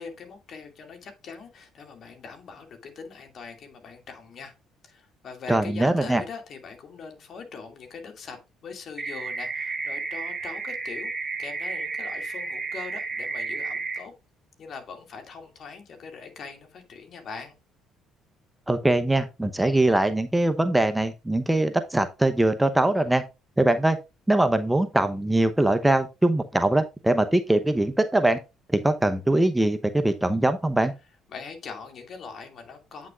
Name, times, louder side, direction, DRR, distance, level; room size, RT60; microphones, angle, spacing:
voice 1, 0.0-4.5 4.8-8.4 8.6-11.1 11.4-14.1 14.6-17.5 31.3-33.1, left 5 dB, 55° left, 5 dB, 2.4 m, -41 dB
voice 2, 5.5-6.2 18.7-23.2 23.6-24.0 24.3-28.4 28.7-30.9, right 1 dB, 10° right, 9 dB, 0.9 m, -22 dB
sound 1, 9.0-14.0, right 4 dB, 25° right, 2.6 m, -32 dB
9.0 x 6.2 x 2.5 m, 0.26 s
supercardioid pair, 65°, 0 cm